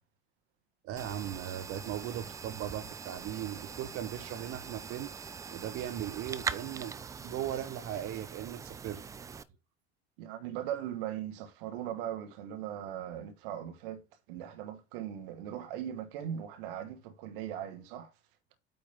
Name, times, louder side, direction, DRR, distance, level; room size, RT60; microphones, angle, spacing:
voice 1, 0.8-5.1 5.5-7.0 7.2-9.0, right 11 dB, 40° right, 0.9 m, -38 dB
sound 1, 1.0-9.4, right 6 dB, 10° right, 0.3 m, -42 dB
voice 2, 10.2-18.1, right 10 dB, 60° right, 1.1 m, -39 dB
8.7 x 3.1 x 5.5 m
figure-of-eight pair, 75°, 32 cm